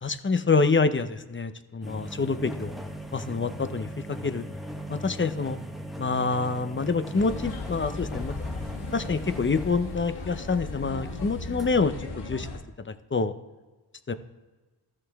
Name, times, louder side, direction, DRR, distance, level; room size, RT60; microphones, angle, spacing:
voice 1, 0.0-2.7 3.3-3.9 4.2-4.4 4.9-5.6 6.0-8.3 8.8-12.5 12.9-13.3 14.1-14.2, left 4 dB, 30° left, 11 dB, 0.7 m, -26 dB
sound 1, 1.8-11.7, equal, ahead, 1.1 m, -39 dB
sound 2, 7.1-12.6, left 3 dB, 70° left, 1.5 m, -37 dB
14.0 x 6.5 x 3.5 m, 1.2 s
cardioid pair, 70°, 41 cm